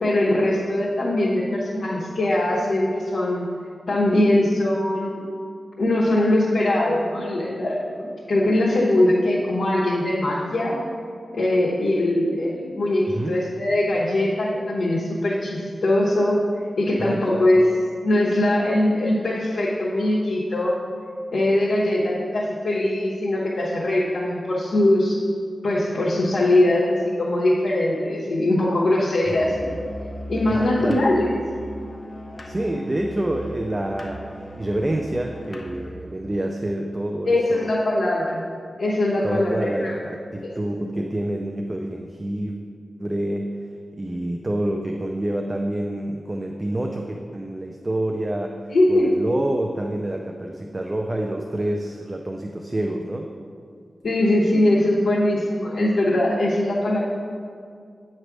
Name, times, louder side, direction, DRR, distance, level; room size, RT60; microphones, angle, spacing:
voice 1, 0.0-3.4 3.9-5.2 5.8-10.8 11.3-16.4 16.8-17.7 18.0-20.8 21.3-25.2 25.6-29.7 30.3-31.3 37.2-38.4 38.8-40.0 40.8-40.9 48.7-49.2 54.0-57.0, left 1 dB, 70° left, -7 dB, 1.1 m, -21 dB
voice 2, 17.0-17.5 30.5-31.1 32.5-34.2 34.6-37.7 39.2-42.6 43.0-43.6 44.0-53.3, right 1 dB, 25° right, 2 dB, 0.4 m, -27 dB
Musical instrument, 29.2-36.0, equal, 35° left, 0.7 m, -37 dB
8.9 x 3.3 x 6.0 m, 2.2 s
wide cardioid pair, 95°, 0 cm